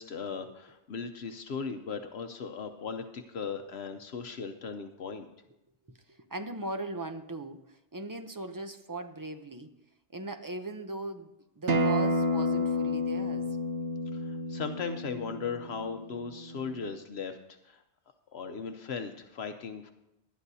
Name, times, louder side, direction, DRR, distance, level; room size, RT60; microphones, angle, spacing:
voice 1, 0.0-5.3 14.1-17.4 17.6-17.8 18.3-19.9, left 5 dB, 70° left, 1.0 m, -37 dB
voice 2, 6.1-9.7 10.1-13.6, right 2 dB, 25° right, 0.5 m, -39 dB
Acoustic guitar, 11.7-16.9, left 1 dB, 90° right, 1.3 m, -30 dB
19.5 x 11.5 x 2.7 m
omnidirectional pair, 1.1 m